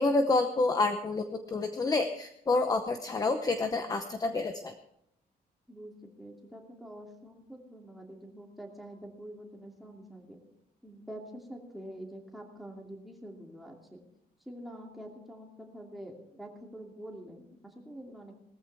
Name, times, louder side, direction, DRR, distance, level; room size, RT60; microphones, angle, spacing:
voice 1, 0.0-4.7, left 3 dB, 20° left, 7 dB, 0.8 m, -28 dB
voice 2, 6.2-10.4 10.8-14.0 14.5-18.3, right 1 dB, ahead, -1 dB, 2.5 m, -46 dB
19.0 x 14.5 x 3.5 m, 0.76 s
wide cardioid pair, 175°, 16 cm